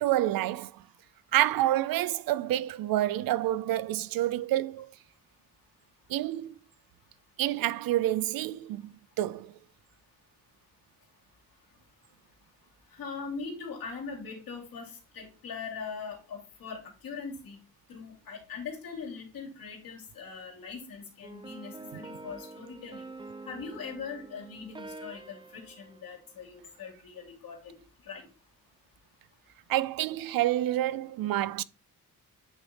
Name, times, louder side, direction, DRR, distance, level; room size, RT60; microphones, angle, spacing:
voice 1, 0.0-0.8 1.3-4.9 6.1-6.5 7.4-9.5 29.7-31.6, right 14 dB, 75° right, 0.5 m, -28 dB
voice 2, 12.9-17.6 17.9-23.1 23.5-28.3, left 5 dB, 75° left, 2.6 m, -41 dB
sound 1, 21.2-26.9, right 3 dB, 15° right, 0.5 m, -47 dB
8.8 x 3.2 x 4.1 m
cardioid pair, 75°, 35 cm